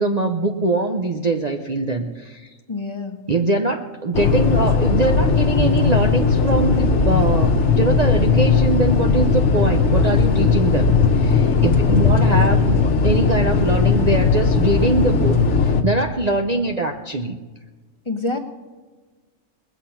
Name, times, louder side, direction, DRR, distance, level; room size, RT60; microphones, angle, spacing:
voice 1, 0.0-2.5 3.3-17.4, right 2 dB, 35° right, 3 dB, 0.7 m, -22 dB
voice 2, 2.7-3.2 18.0-18.4, left 2 dB, 25° left, 4 dB, 1.1 m, -26 dB
sound 1, 4.1-15.8, left 5 dB, 60° left, 1.2 m, -17 dB
20.5 x 8.2 x 5.7 m, 1.3 s
omnidirectional pair, 1.4 m